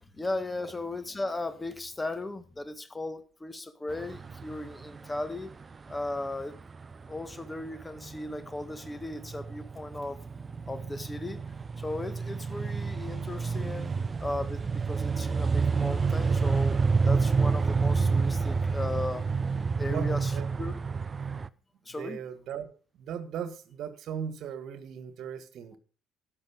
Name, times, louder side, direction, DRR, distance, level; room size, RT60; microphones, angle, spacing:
voice 1, 0.1-5.5 5.9-6.6 7.0-10.2 10.7-11.4 11.8-13.9 14.2-16.8 17.0-19.3 19.8-20.8 21.9-22.2, left 2 dB, 15° left, 11 dB, 1.7 m, -36 dB
sound 1, 3.9-21.5, right 4 dB, 30° right, 0.6 m, -29 dB
voice 2, 19.9-20.6 22.0-22.7 23.0-25.8, right 8 dB, 50° right, 12 dB, 1.7 m, -38 dB
12.5 x 9.7 x 5.2 m, 0.39 s
figure-of-eight pair, 55°, 0 cm